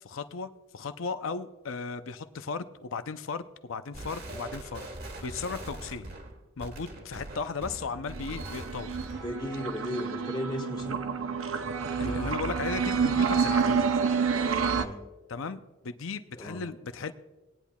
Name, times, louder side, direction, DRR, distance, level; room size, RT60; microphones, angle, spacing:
voice 1, 0.0-6.1 6.6-9.0 12.0-13.9 15.3-17.1, left 4 dB, 70° left, 11 dB, 0.6 m, -36 dB
sound 1, 3.9-9.4, right 1 dB, 50° right, 1.6 m, -42 dB
sound 2, 8.1-14.9, right 6 dB, 75° right, 0.7 m, -28 dB
voice 2, 9.2-11.0 14.7-15.0 16.4-16.6, left 1 dB, 20° left, 3 dB, 1.6 m, -35 dB
19.5 x 10.0 x 2.3 m, 1.2 s
head